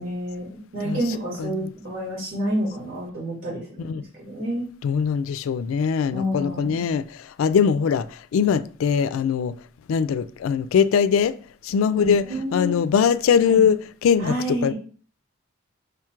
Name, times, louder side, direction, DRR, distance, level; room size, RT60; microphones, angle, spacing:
voice 1, 0.0-4.7 6.1-6.8 12.0-12.8 13.4-13.6 14.2-14.7, equal, 75° right, 2.2 m, -29 dB
voice 2, 4.8-9.5 9.9-11.4 11.6-12.2 12.5-14.7, left 7 dB, 75° left, 0.3 m, -21 dB
4.9 x 2.4 x 4.4 m
head